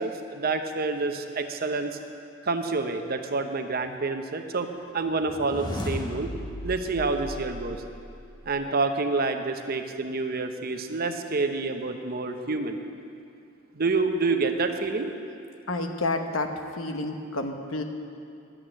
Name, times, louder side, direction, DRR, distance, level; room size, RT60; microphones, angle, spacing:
voice 1, 0.0-2.0 2.4-6.3 6.6-7.8 8.4-12.8 13.7-15.2, right 3 dB, 50° right, 6 dB, 0.8 m, -28 dB
sound 1, 5.2-8.4, left 1 dB, 20° left, 0.9 m, -36 dB
voice 2, 15.7-16.5 16.8-17.8, left 2 dB, 90° left, 5 dB, 1.0 m, -29 dB
11.5 x 8.3 x 7.7 m, 2.5 s
head